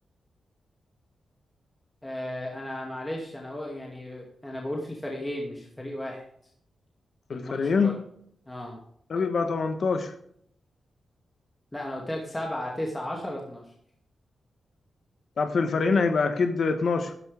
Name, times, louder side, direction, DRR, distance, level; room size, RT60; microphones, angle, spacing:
voice 1, 2.0-6.2 7.3-7.9 8.5-8.8 11.7-13.6, left 1 dB, 10° left, -1 dB, 2.5 m, -34 dB
voice 2, 7.3-8.0 9.1-10.1 15.4-17.1, left 4 dB, 55° left, 7 dB, 1.3 m, -25 dB
13.5 x 10.5 x 3.5 m, 0.68 s
wide cardioid pair, 125°, 0 cm